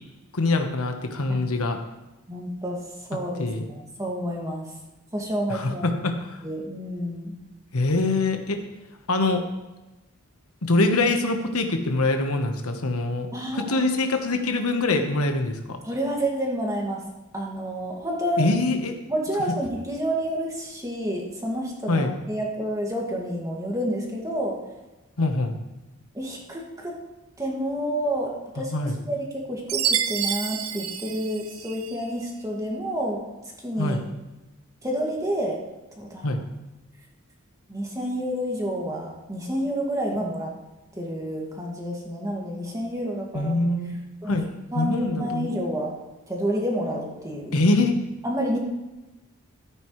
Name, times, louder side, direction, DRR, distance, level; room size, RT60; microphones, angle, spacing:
voice 1, 0.3-1.8 3.4-3.7 5.5-6.4 7.7-8.6 9.1-9.4 10.6-13.3 13.5-15.8 18.4-19.0 21.9-22.1 25.2-25.5 28.6-29.0 33.8-34.0 36.2-36.4 43.3-44.0 44.3-44.5 44.7-45.5 47.5-48.0, left 2 dB, 90° left, 5 dB, 1.2 m, -24 dB
voice 2, 2.3-4.7 5.1-6.0 6.4-7.3 13.3-13.8 15.8-17.0 17.3-18.5 19.1-24.6 26.1-27.0 27.4-33.2 33.6-34.0 34.8-35.6 36.0-36.4 37.7-40.5 41.0-43.6 44.2-44.4 44.7-45.9 46.3-47.6 48.2-48.6, equal, 15° right, -2 dB, 2.1 m, -29 dB
Chime, 29.7-32.0, right 8 dB, 80° right, 0.7 m, -28 dB
13.5 x 9.2 x 3.2 m, 1.1 s
head